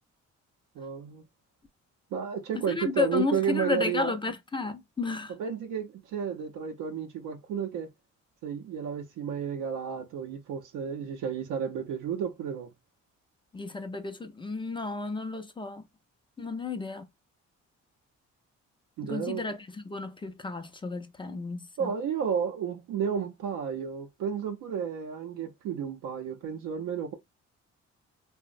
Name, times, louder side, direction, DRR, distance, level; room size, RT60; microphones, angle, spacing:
voice 1, 0.8-1.2 2.1-4.1 5.4-7.9 8.4-12.7 19.0-19.4 21.8-27.2, right 7 dB, 80° right, 0.6 m, -32 dB
voice 2, 2.7-5.3 13.5-15.9 16.4-17.1 19.0-21.9, left 4 dB, 15° left, 0.4 m, -32 dB
2.9 x 2.1 x 2.5 m
cardioid pair, 90°, 30 cm